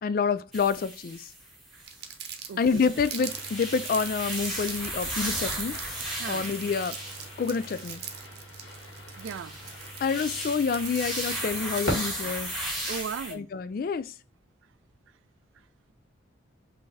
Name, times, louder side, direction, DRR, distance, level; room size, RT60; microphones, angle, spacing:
voice 1, 0.0-1.3 2.6-5.8 6.3-7.0 7.4-8.0 10.0-12.5 13.3-14.1, left 5 dB, 50° left, 0.3 m, -28 dB
sound 1, 0.5-2.0 2.5-8.0 8.9-13.3, right 1 dB, ahead, 1.4 m, -36 dB
Crumpling crinkling, 1.8-12.1, right 9 dB, 55° right, 0.8 m, -41 dB
voice 2, 2.5-2.8 6.2-6.5 9.2-9.6 12.9-13.5, right 6 dB, 85° right, 0.4 m, -36 dB
sound 2, 3.1-12.1, equal, 70° left, 1.7 m, -41 dB
5.5 x 2.7 x 3.2 m
head